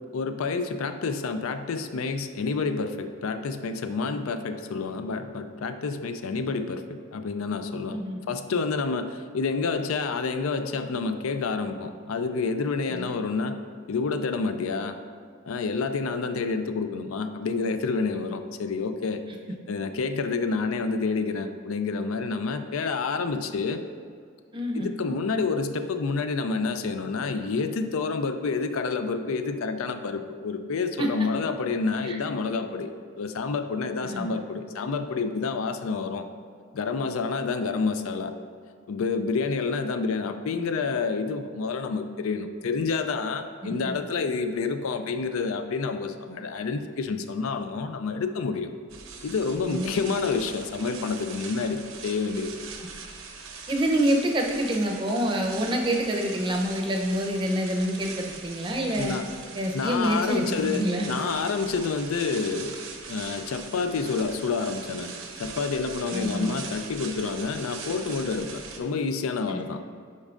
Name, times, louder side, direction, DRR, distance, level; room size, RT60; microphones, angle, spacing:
voice 1, 0.1-8.0 8.3-13.6 13.9-15.0 15.5-19.2 19.7-23.8 24.7-32.9 33.2-36.3 36.7-38.3 38.9-48.7 49.2-52.6 59.0-59.3 59.7-62.8 63.1-69.8, left 4 dB, 85° left, 8 dB, 0.4 m, -28 dB
voice 2, 24.5-24.9 31.0-31.1 32.0-32.2 34.0-34.3 43.6-43.9 49.7-50.2 52.8-52.9 53.7-59.2 59.5-61.1 66.1-66.6 69.5-69.6, equal, 25° right, 1 dB, 0.6 m, -27 dB
sound 1, 48.9-68.8, right 5 dB, 70° right, 0.7 m, -41 dB
8.4 x 5.3 x 2.5 m, 2.1 s
head